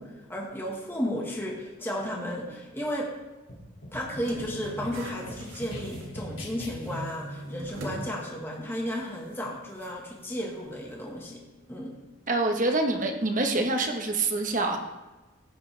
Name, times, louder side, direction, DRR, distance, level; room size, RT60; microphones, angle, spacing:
voice 1, 0.0-3.1 3.9-12.0, equal, 10° left, -2 dB, 1.5 m, -34 dB
sound 1, 3.5-7.1, left 1 dB, 85° left, 2.8 m, -42 dB
sound 2, 4.1-6.6 6.8-8.1 8.4-8.5 9.8-9.9, right 1 dB, 80° right, 2.1 m, -40 dB
voice 2, 12.3-14.8, right 2 dB, 40° right, 3 dB, 1.2 m, -26 dB
17.0 x 8.6 x 3.4 m, 1.2 s
head